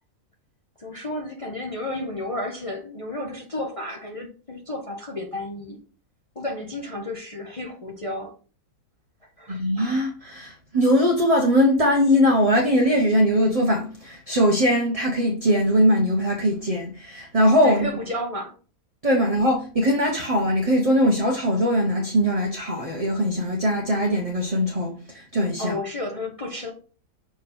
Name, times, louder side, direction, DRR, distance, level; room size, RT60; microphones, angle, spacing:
voice 1, 0.8-5.8 6.3-8.3 9.2-9.6 17.6-18.5 25.6-26.7, left 1 dB, 25° left, 0.9 m, -32 dB
voice 2, 9.5-17.9 19.0-25.8, equal, 25° right, 1.0 m, -21 dB
6.5 x 3.5 x 4.3 m
omnidirectional pair, 1.6 m